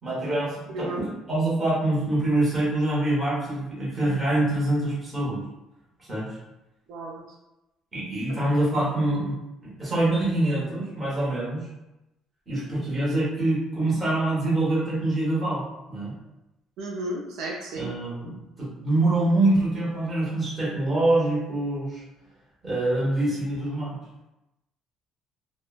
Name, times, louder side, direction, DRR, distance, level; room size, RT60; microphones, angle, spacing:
voice 1, 0.0-5.4 6.0-6.3 7.9-9.4 9.6-11.7 12.5-15.6 15.9-16.1 17.7-22.0 22.6-24.0, right 2 dB, 15° right, -8 dB, 1.0 m, -25 dB
voice 2, 6.9-7.2 8.3-8.4 16.8-17.9, right 1 dB, 75° right, -2 dB, 0.4 m, -33 dB
2.9 x 2.0 x 2.3 m, 0.95 s
cardioid pair, 165°, 0 cm